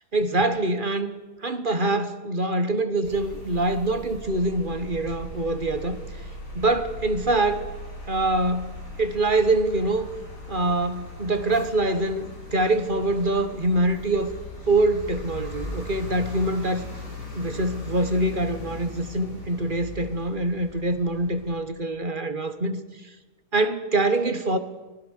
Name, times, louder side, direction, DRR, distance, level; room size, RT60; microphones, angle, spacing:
voice 1, 0.1-1.1 1.4-6.0 6.5-7.6 8.1-10.1 10.5-14.3 14.7-16.8 17.3-22.8 23.5-24.6, right 2 dB, 35° right, 10 dB, 1.4 m, -24 dB
sound 1, 3.0-21.6, left 2 dB, 90° left, 6.9 m, -39 dB
25.5 x 19.5 x 6.5 m, 1.2 s
omnidirectional pair, 1.7 m